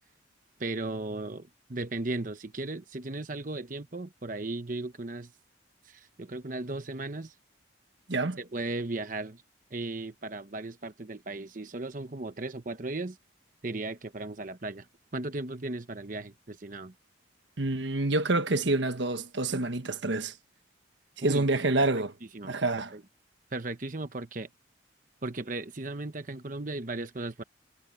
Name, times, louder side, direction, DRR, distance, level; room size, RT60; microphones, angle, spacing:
voice 1, 0.6-5.3 5.8-7.3 8.4-9.4 9.7-13.2 13.6-14.9 15.1-16.9 21.2-21.9 22.3-22.5 22.9-23.0 23.5-24.5 25.2-27.4, right 2 dB, 45° right, 1.0 m, -36 dB
voice 2, 17.6-20.3 21.2-22.1 22.4-22.9, right 2 dB, 70° right, 1.4 m, -27 dB
head